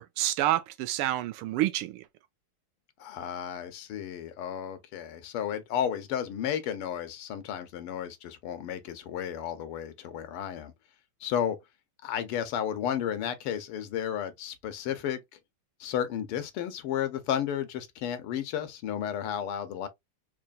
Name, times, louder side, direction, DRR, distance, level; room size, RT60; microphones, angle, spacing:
voice 1, 0.0-2.0, right 14 dB, 90° right, 1.5 m, -28 dB
voice 2, 3.0-10.7 11.2-11.6 12.0-15.2 15.8-19.9, left 9 dB, 85° left, 1.8 m, -33 dB
4.3 x 3.0 x 2.4 m
omnidirectional pair, 2.4 m